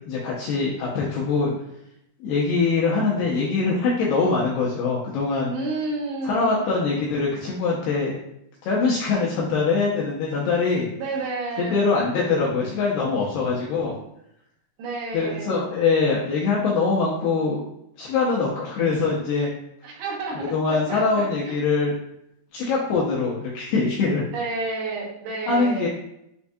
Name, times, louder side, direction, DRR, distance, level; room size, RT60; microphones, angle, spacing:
voice 1, 0.1-1.5 2.2-5.5 6.2-8.2 8.6-10.9 11.6-14.0 15.1-17.6 18.0-19.5 20.4-21.9 22.5-24.3 25.5-25.9, left 4 dB, 85° left, -4 dB, 2.3 m, -23 dB
voice 2, 5.5-6.7 11.0-12.0 14.8-15.7 19.8-21.6 24.3-25.9, right 3 dB, 75° right, -4 dB, 3.1 m, -31 dB
6.8 x 2.6 x 2.2 m, 0.78 s
omnidirectional pair, 5.1 m